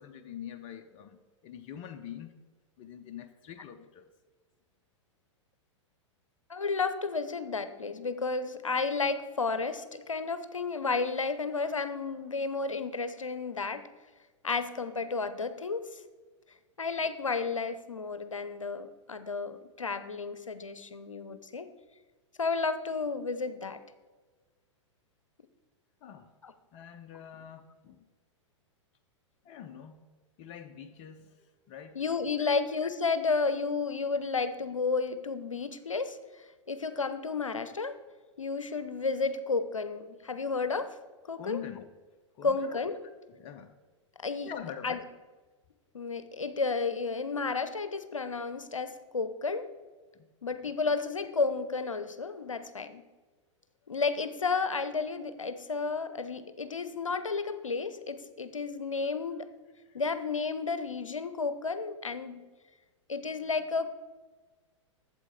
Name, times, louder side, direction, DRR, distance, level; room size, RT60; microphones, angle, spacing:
voice 1, 0.0-2.4 2.8-4.1 26.0-26.3 26.7-28.1 29.4-30.0 30.4-32.0 32.4-32.5 41.4-41.9 42.4-42.8 43.3-43.7 44.4-45.1 50.1-50.3 50.6-50.7 59.8-60.0, left 9 dB, 35° left, 7 dB, 0.6 m, -45 dB
voice 2, 6.5-13.9 14.4-16.0 16.8-21.7 22.4-23.8 26.4-26.5 31.9-38.0 38.4-41.0 41.3-41.6 42.4-43.0 44.2-44.5 44.8-45.0 45.9-49.7 50.4-53.0 53.9-59.5 59.9-62.5 63.1-64.0, left 4 dB, 85° left, 12 dB, 0.6 m, -32 dB
8.2 x 7.6 x 4.5 m, 1.3 s
figure-of-eight pair, 100°, 16 cm